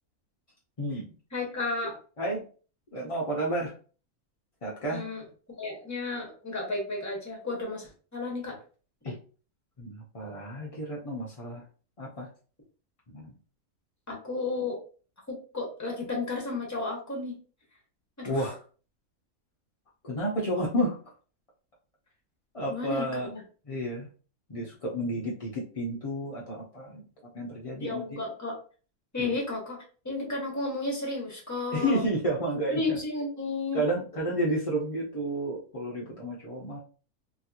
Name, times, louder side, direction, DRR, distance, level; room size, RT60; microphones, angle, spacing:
voice 1, 1.3-2.0 4.9-5.2 5.6-8.6 14.1-14.8 15.3-17.4 18.2-18.5 22.7-23.4 27.8-28.6 29.1-29.8 30.0-32.0 32.7-33.8, left 3 dB, 15° left, -1 dB, 0.9 m, -33 dB
voice 2, 2.9-3.7 4.6-5.0 9.0-9.1 9.8-11.6 12.0-12.3 13.1-13.3 18.2-18.6 20.0-21.0 22.5-23.3 23.7-24.1 24.5-27.0 27.3-28.2 29.2-29.4 31.7-33.0 33.7-36.8, right 1 dB, 45° left, -5 dB, 0.4 m, -31 dB
3.0 x 2.8 x 2.4 m, 0.38 s
omnidirectional pair, 1.5 m